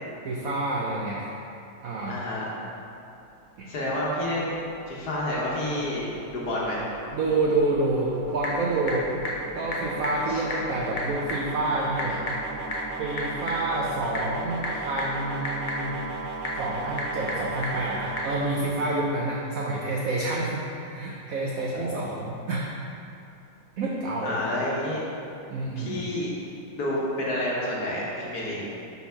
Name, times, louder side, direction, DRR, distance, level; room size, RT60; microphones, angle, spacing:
voice 1, 0.2-1.3 1.8-2.2 3.6-3.7 7.1-9.1 9.5-12.2 13.0-16.0 16.6-22.7 23.8-24.4 25.5-26.0, right 2 dB, 85° right, -3 dB, 0.7 m, -28 dB
voice 2, 2.0-2.5 3.7-4.6 4.9-6.9 10.3-10.4 21.7-22.1 24.2-25.0 25.8-26.3 26.7-28.6, left 1 dB, 55° left, -5 dB, 1.4 m, -29 dB
sound 1, 3.5-19.7, right 3 dB, 70° right, 1.1 m, -38 dB
Typing / Telephone, 7.9-18.4, left 1 dB, 75° left, 0.4 m, -35 dB
5.7 x 4.0 x 5.7 m, 2.7 s
omnidirectional pair, 2.3 m